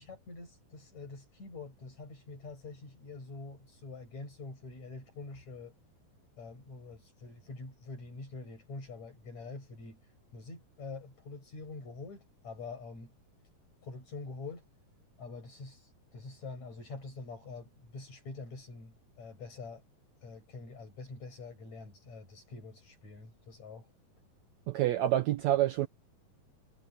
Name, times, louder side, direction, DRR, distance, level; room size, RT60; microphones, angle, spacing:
voice 1, 0.0-5.7 6.4-13.1 13.8-14.7 15.2-19.8 20.2-23.9, left 3 dB, 50° left, 9.0 m, -46 dB
voice 2, 24.7-25.9, right 13 dB, 85° right, 1.5 m, -27 dB
omnidirectional pair, 4.2 m